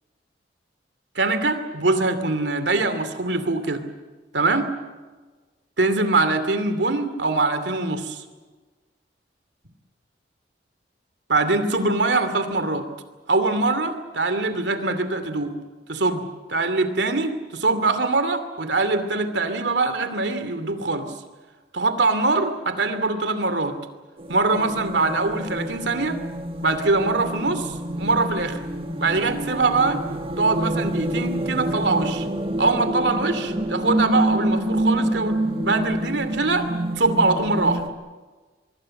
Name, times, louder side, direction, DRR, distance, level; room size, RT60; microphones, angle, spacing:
voice 1, 1.1-3.8 4.3-4.7 5.8-8.2 11.3-12.9 13.3-15.5 15.9-21.1 21.7-23.8 24.3-26.2 26.6-28.6 29.0-30.0 30.4-32.3 32.6-36.7 37.0-37.8, right 3 dB, 80° right, 10 dB, 2.6 m, -23 dB
sound 1, 24.2-37.9, right 1 dB, 30° right, 1.9 m, -27 dB
24.5 x 23.0 x 7.7 m, 1.3 s
head